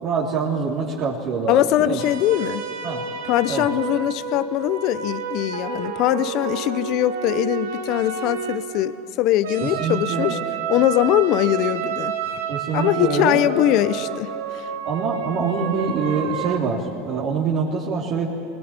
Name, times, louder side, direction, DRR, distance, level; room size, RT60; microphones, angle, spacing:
voice 1, 0.0-2.0 2.8-3.0 3.5-3.7 9.6-10.4 12.5-13.4 14.8-18.3, right 5 dB, 50° right, -5 dB, 3.2 m, -25 dB
voice 2, 1.5-2.6 3.3-10.4 10.7-12.1 12.7-14.6, left 13 dB, 55° left, 15 dB, 0.8 m, -21 dB
sound 1, 2.0-8.9 9.4-16.6, right 7 dB, 85° right, 2.2 m, -30 dB
20.5 x 19.5 x 9.9 m, 2.6 s
supercardioid pair, 115°, 0 cm